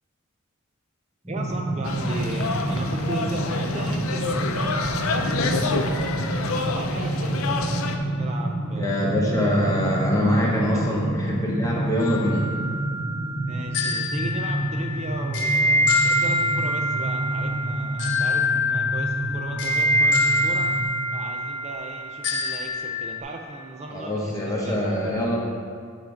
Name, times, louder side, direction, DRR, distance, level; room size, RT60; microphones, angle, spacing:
sound 1, 1.2-20.8, right 1 dB, 15° right, 1.6 m, -29 dB
voice 1, 1.3-5.8 6.4-9.2 10.7-11.0 13.4-20.7 21.1-25.1, right 2 dB, 30° right, 2 dB, 0.4 m, -37 dB
sound 2, 1.8-8.0, left 4 dB, 75° left, 0.6 m, -28 dB
voice 2, 8.8-12.4 23.9-25.4, equal, 15° left, -4 dB, 1.1 m, -24 dB
sound 3, 12.0-23.2, left 1 dB, 55° left, 1.2 m, -25 dB
9.3 x 3.9 x 5.0 m, 2.1 s
head